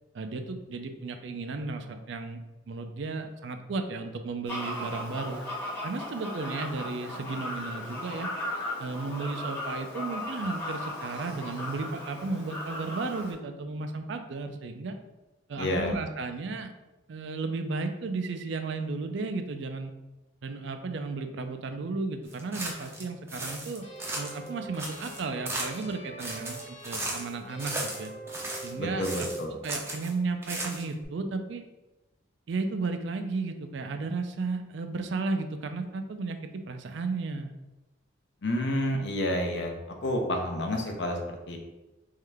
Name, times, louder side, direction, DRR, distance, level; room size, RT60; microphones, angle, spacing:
voice 1, 0.1-2.4 2.7-5.4 5.8-8.3 8.8-15.0 15.5-16.7 17.1-19.9 20.4-23.9 24.1-28.1 28.6-29.3 29.6-31.6 32.5-37.5, right 3 dB, 65° right, 7 dB, 0.4 m, -34 dB
Fowl, 4.5-13.3, left 1 dB, 10° left, 0.8 m, -37 dB
voice 2, 15.6-16.0 28.8-29.6 38.4-41.6, left 1 dB, 60° left, 2 dB, 0.6 m, -30 dB
sound 1, 22.3-23.0 23.3-24.5 24.7-25.9 26.2-27.3 27.6-28.7 29.0-30.1 30.4-31.0, right 1 dB, 10° right, 0.5 m, -36 dB
sound 2, 23.8-29.5, right 2 dB, 35° left, 1.0 m, -43 dB
3.6 x 3.2 x 3.4 m, 1.1 s
head